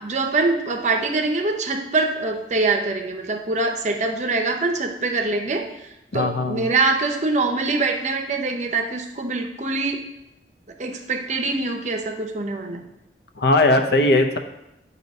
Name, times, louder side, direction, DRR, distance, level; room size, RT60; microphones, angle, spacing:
voice 1, 0.0-5.7 6.1-10.0 10.8-12.8, right 3 dB, 40° right, 4 dB, 0.6 m, -24 dB
voice 2, 6.1-6.7 13.4-14.4, left 2 dB, 60° left, 5 dB, 0.6 m, -19 dB
8.0 x 2.8 x 5.2 m, 0.88 s
head